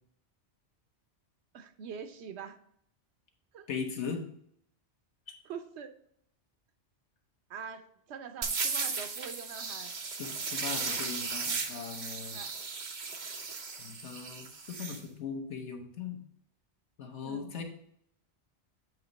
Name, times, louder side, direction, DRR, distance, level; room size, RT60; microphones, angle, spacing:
voice 1, 1.5-2.6 3.5-3.7 5.5-5.9 7.5-9.9 11.2-11.3 12.3-12.5 17.2-17.5, right 6 dB, 75° right, 9 dB, 0.9 m, -44 dB
voice 2, 3.7-4.2 5.3-5.4 10.2-12.4 13.8-16.2 17.0-17.6, left 6 dB, 90° left, 4 dB, 1.3 m, -39 dB
sound 1, 8.4-15.0, right 4 dB, 45° right, 0.8 m, -36 dB
7.8 x 3.0 x 5.1 m, 0.70 s
omnidirectional pair, 1.1 m